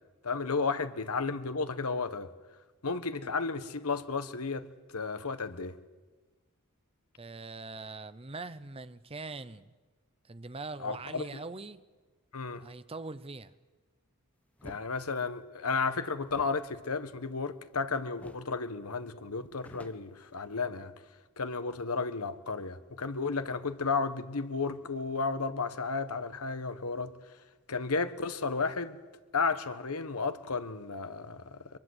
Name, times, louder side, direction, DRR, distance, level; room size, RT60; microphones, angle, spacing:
voice 1, 0.2-2.3 2.8-5.8 10.8-11.3 12.3-12.6 14.6-20.9 21.4-27.1 27.7-29.0 29.3-31.8, left 4 dB, 85° left, 1.3 m, -33 dB
voice 2, 7.2-9.7 10.2-11.8 12.6-13.5, right 3 dB, 25° right, 0.8 m, -42 dB
sound 1, 14.6-14.9 16.3-17.8 18.2-18.6 18.9-19.0 19.3-20.8, left 1 dB, 5° left, 1.0 m, -52 dB
23.5 x 22.5 x 8.1 m
head